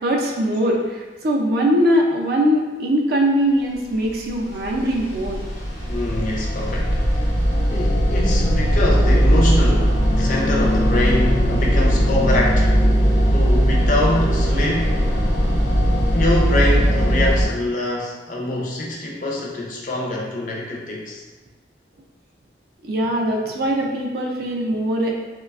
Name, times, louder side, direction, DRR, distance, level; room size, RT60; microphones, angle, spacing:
voice 1, 0.0-5.4 22.8-25.1, equal, 55° right, -1 dB, 0.4 m, -21 dB
sound 1, 4.3-17.5, equal, 80° left, 0.8 m, -18 dB
voice 2, 5.9-7.3 7.7-12.9 13.3-15.0 16.1-21.2, left 1 dB, 45° left, -2 dB, 0.4 m, -24 dB
3.1 x 2.1 x 2.3 m, 1.2 s
head